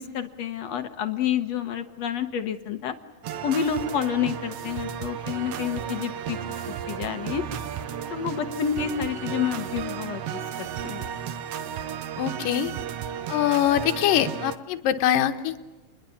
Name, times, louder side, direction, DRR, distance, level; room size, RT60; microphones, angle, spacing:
voice 1, 0.0-3.0 3.4-6.4 6.9-7.4 8.1-10.2 10.6-11.1, left 8 dB, 65° left, 8 dB, 1.9 m, -29 dB
sound 1, 3.2-14.6, right 9 dB, 65° right, 1.6 m, -34 dB
voice 2, 12.2-12.7 13.3-15.6, left 11 dB, 85° left, 7 dB, 2.6 m, -23 dB
28.0 x 21.5 x 7.2 m, 1.2 s
omnidirectional pair, 3.8 m